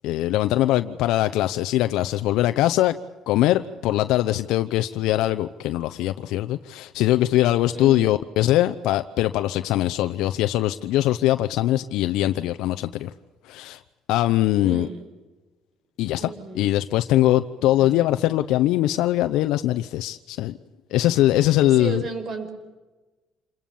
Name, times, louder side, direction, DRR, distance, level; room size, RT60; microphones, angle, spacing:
voice 1, 0.0-3.0 3.3-13.1 13.4-13.8 14.1-14.9 16.0-20.6 20.9-22.0, left 14 dB, 80° left, 9 dB, 0.8 m, -22 dB
voice 2, 7.7-8.2 14.6-15.1 16.2-16.7 17.6-18.0 21.4-22.5, right 3 dB, 45° right, 9 dB, 5.3 m, -34 dB
27.5 x 21.5 x 7.2 m, 1.2 s
cardioid pair, 105°, 0 cm